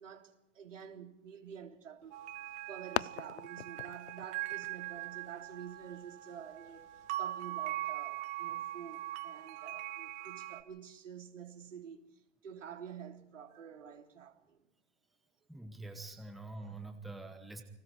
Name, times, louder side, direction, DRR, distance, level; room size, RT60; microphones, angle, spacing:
voice 1, 0.0-2.2 2.7-12.0 12.4-14.6, right 8 dB, 80° right, 3.5 m, -49 dB
sound 1, 2.0-7.1, left 12 dB, 65° left, 0.6 m, -44 dB
sound 2, 2.1-10.6, right 15 dB, 20° right, 0.8 m, -41 dB
voice 2, 15.5-17.6, right 2 dB, ahead, 1.0 m, -45 dB
29.0 x 20.0 x 4.7 m
hypercardioid pair, 145°, 37 cm